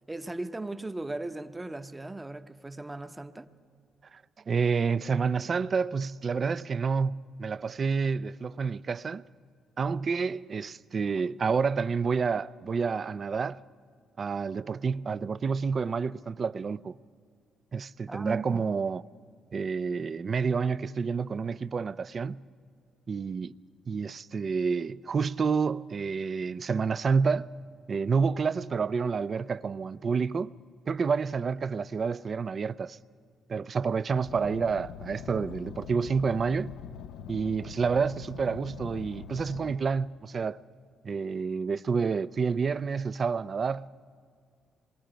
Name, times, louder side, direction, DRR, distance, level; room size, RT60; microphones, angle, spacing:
voice 1, 0.1-3.5 18.1-18.7, right 2 dB, 15° right, 0.8 m, -37 dB
voice 2, 4.5-9.2 9.8-13.6 14.2-17.0 17.7-19.0 19.5-22.4 23.1-23.6 23.9-27.5 27.9-30.5 30.9-33.0 33.5-36.7 37.3-40.6 41.0-43.9, right 5 dB, 45° right, 0.4 m, -29 dB
Car, 34.2-39.7, left 7 dB, 90° left, 0.5 m, -43 dB
26.5 x 21.5 x 5.1 m
cardioid pair, 90°, 0 cm